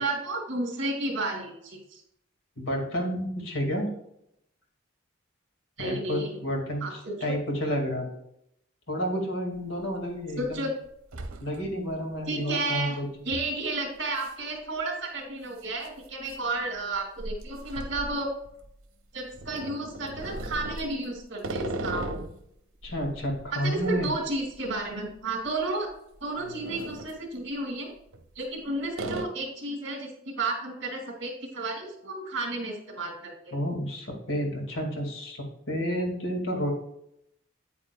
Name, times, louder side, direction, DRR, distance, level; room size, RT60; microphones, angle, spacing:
voice 1, 0.0-2.0 5.8-6.4 6.8-7.4 10.4-10.7 12.3-13.0 13.3-18.3 19.1-22.1 23.5-25.9 26.2-27.9 28.4-33.6, right 2 dB, 55° right, 2 dB, 2.4 m, -32 dB
voice 2, 2.6-3.9 5.8-8.1 8.9-10.6 11.4-13.1 22.8-24.1 33.5-36.7, equal, 65° left, 1 dB, 2.2 m, -30 dB
sound 1, 9.5-9.6 10.2-10.6 10.8-11.9 12.2-12.3 13.3-13.6 14.2-14.4 14.6-14.7 15.7-18.8 19.3-22.4 22.8-25.2 25.4-25.6 26.2-27.2 28.0-28.6 29.0-29.3, right 2 dB, 90° right, 0.9 m, -38 dB
8.8 x 8.8 x 2.4 m, 0.76 s
head